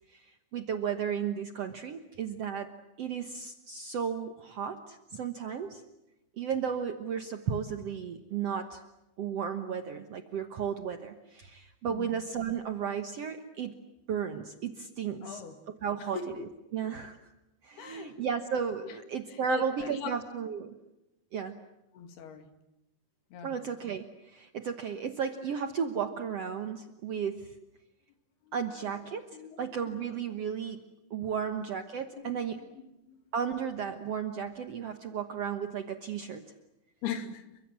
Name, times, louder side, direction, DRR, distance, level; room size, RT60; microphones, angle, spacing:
voice 1, 0.1-2.7 3.0-5.8 6.4-8.8 9.2-13.7 14.1-15.4 15.8-16.2 16.7-17.2 17.6-20.7 21.3-21.5 23.4-27.5 28.5-29.3 29.6-30.8 31.1-32.6 33.3-36.5, right 7 dB, 80° right, 7 dB, 1.4 m, -34 dB
voice 2, 11.9-12.2 15.2-15.6 16.0-16.3 17.8-18.2 18.8-19.0 19.3-20.1 21.9-22.5 23.3-23.6 28.4-28.9 29.3-30.1 31.2-31.4 32.2-32.4 33.1-33.2 37.0-37.5, left 7 dB, 70° left, 8 dB, 4.4 m, -41 dB
29.5 x 24.5 x 7.6 m, 0.94 s
omnidirectional pair, 4.8 m